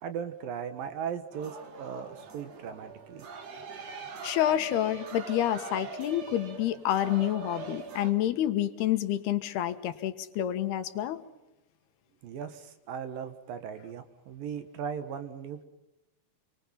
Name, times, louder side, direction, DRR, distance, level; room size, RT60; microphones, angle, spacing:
voice 1, 0.0-3.3 12.2-15.7, right 7 dB, 65° right, 10 dB, 2.9 m, -38 dB
sound 1, 1.3-8.1, right 5 dB, 45° right, 3.0 m, -42 dB
voice 2, 4.2-11.2, left 12 dB, 80° left, 10 dB, 3.3 m, -28 dB
27.5 x 24.5 x 5.7 m, 0.97 s
omnidirectional pair, 4.7 m